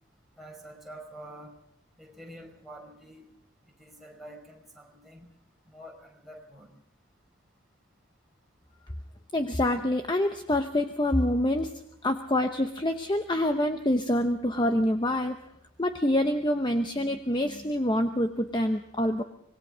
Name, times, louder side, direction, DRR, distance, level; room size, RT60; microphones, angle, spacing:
voice 1, 0.4-1.5 2.0-3.3 3.8-5.3 5.6-6.7, right 1 dB, ahead, -1 dB, 5.0 m, -47 dB
voice 2, 9.3-11.7 12.0-15.4 15.8-19.2, left 1 dB, 20° left, 7 dB, 0.9 m, -26 dB
25.5 x 20.0 x 5.1 m, 0.76 s
head